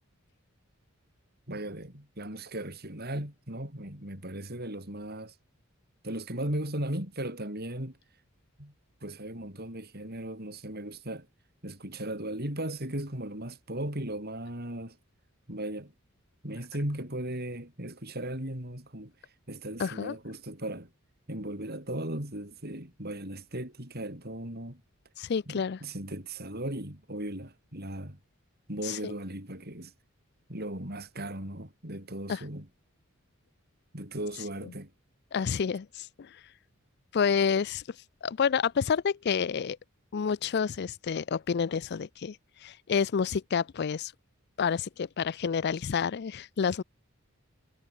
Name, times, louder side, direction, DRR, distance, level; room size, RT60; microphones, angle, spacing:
voice 1, 1.5-5.3 6.0-8.0 8.6-8.7 9.0-11.3 11.6-15.0 15.5-15.9 16.4-19.1 19.5-20.9 21.3-24.8 25.5-28.2 28.7-29.9 30.5-32.7 33.9-34.9, right 1 dB, 45° right, 7.5 m, -37 dB
voice 2, 19.8-20.2 25.2-25.8 28.8-29.1 32.3-32.4 35.3-36.4 37.1-38.0 38.2-39.8 40.1-44.1 44.6-46.8, left 6 dB, 50° left, 0.4 m, -29 dB
head